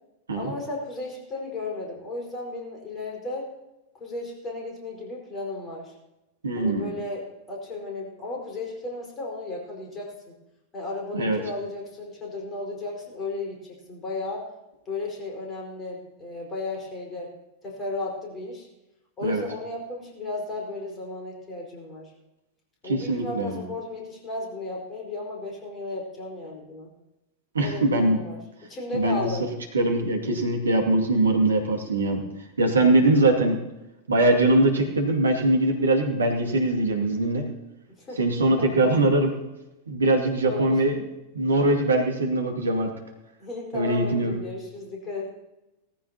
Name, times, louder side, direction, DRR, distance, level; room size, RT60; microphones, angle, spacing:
voice 1, 0.3-3.5 4.0-5.9 6.6-10.3 10.7-13.6 13.9-14.5 14.8-17.3 17.6-18.7 19.2-22.1 22.8-26.9 27.6-29.5 38.0-38.2 38.6-39.0 40.4-40.8 43.4-45.3, left 2 dB, 25° left, -2 dB, 4.7 m, -34 dB
voice 2, 6.4-6.9 11.1-11.4 19.2-19.4 22.8-23.6 27.5-28.2 28.9-29.3 29.7-32.2 32.6-33.6 34.1-37.4 38.2-39.3 39.9-41.0 41.3-43.0 43.7-44.4, right 2 dB, 75° right, 2 dB, 2.3 m, -22 dB
18.5 x 14.5 x 2.9 m, 0.96 s
figure-of-eight pair, 90°, 0 cm